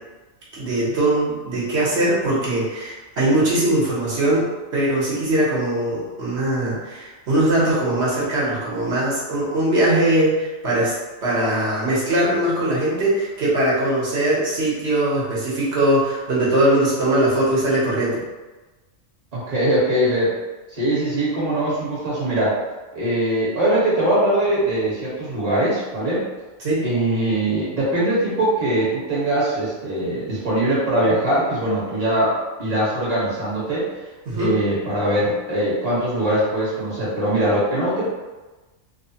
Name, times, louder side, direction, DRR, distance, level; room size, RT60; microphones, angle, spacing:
voice 1, 0.5-10.9 11.2-18.2 26.6-26.9 34.3-34.6, right 1 dB, 60° right, -7 dB, 1.2 m, -21 dB
voice 2, 19.3-20.3 20.7-22.6 22.9-26.2 26.8-33.9 34.3-38.1, right 1 dB, 30° right, -9 dB, 1.2 m, -21 dB
3.0 x 2.1 x 2.7 m, 1.2 s
omnidirectional pair, 1.4 m